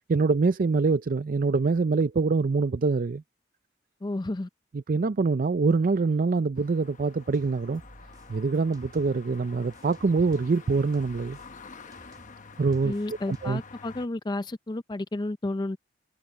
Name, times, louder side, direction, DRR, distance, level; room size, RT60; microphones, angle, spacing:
voice 1, 0.1-3.2 4.9-7.8 8.3-11.4 12.6-12.9 13.3-13.6, right 4 dB, 50° right, 0.5 m, -24 dB
voice 2, 4.0-4.5 12.8-15.8, left 2 dB, 25° left, 0.5 m, -31 dB
sound 1, 6.5-14.1, left 4 dB, 45° left, 0.9 m, -49 dB
sound 2, 7.3-9.4 9.7-13.7, equal, 20° right, 2.1 m, -55 dB
head